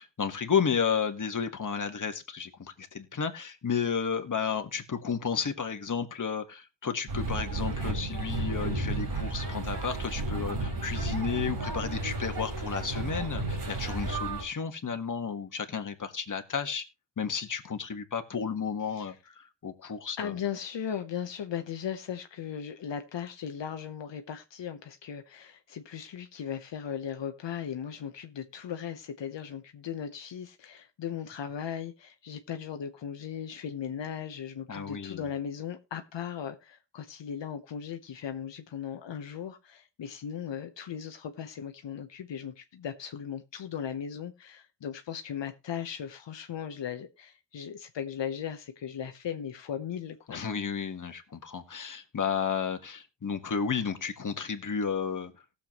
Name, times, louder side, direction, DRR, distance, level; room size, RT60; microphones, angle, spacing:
voice 1, 0.0-16.8 17.2-20.3 34.7-35.2 50.3-55.3, left 6 dB, 45° left, 1.6 m, -32 dB
sound 1, 7.1-14.4, right 2 dB, 55° right, 4.2 m, -32 dB
voice 2, 20.2-50.4, left 8 dB, 80° left, 1.0 m, -37 dB
18.5 x 7.0 x 3.0 m
wide cardioid pair, 105°, 43 cm